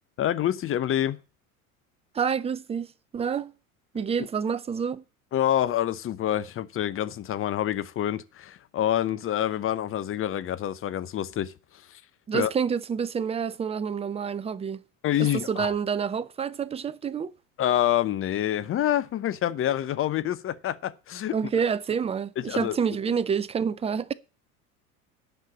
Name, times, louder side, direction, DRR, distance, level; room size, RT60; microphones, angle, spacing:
voice 1, 0.2-1.2 4.2-4.3 5.3-12.0 12.3-12.5 15.0-15.7 17.6-21.4 22.4-22.8, left 11 dB, 30° left, 0.8 m, -27 dB
voice 2, 2.1-3.5 3.9-5.0 12.3-14.8 15.2-17.3 21.3-24.1, right 6 dB, 15° right, 0.5 m, -28 dB
10.0 x 5.7 x 8.5 m
figure-of-eight pair, 75°, 44 cm